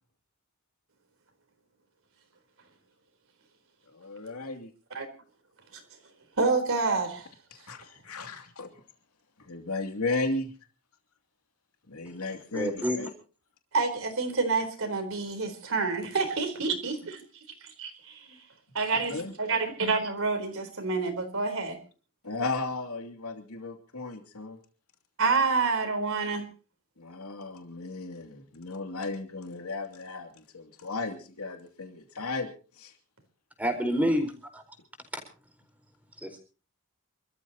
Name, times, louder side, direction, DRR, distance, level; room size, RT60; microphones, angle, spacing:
voice 1, 3.9-4.7 7.5-8.7 9.4-10.5 11.9-13.1 19.1-19.3 22.2-24.6 27.0-32.5 32.8-32.9 34.0-34.2, left 3 dB, 75° left, 2.8 m, -35 dB
voice 2, 6.4-7.3 13.7-17.2 17.6-18.4 18.7-21.8 25.2-26.5, right 4 dB, 65° right, 4.2 m, -28 dB
voice 3, 12.5-13.0 33.6-34.6 35.1-35.2 36.2-36.4, equal, 5° right, 4.5 m, -28 dB
28.5 x 14.0 x 3.0 m
head